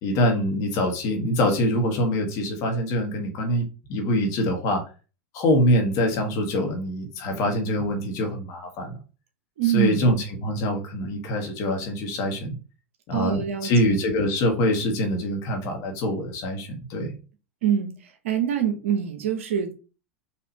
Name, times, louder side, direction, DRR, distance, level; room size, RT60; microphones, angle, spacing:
voice 1, 0.0-4.9 5.3-9.0 9.6-12.5 13.1-17.1, left 1 dB, 50° left, 1.3 m, -24 dB
voice 2, 9.6-10.0 13.1-13.7 17.6-17.9 18.2-19.7, right 9 dB, 75° right, 0.8 m, -24 dB
4.2 x 2.7 x 2.8 m
hypercardioid pair, 100°, 7 cm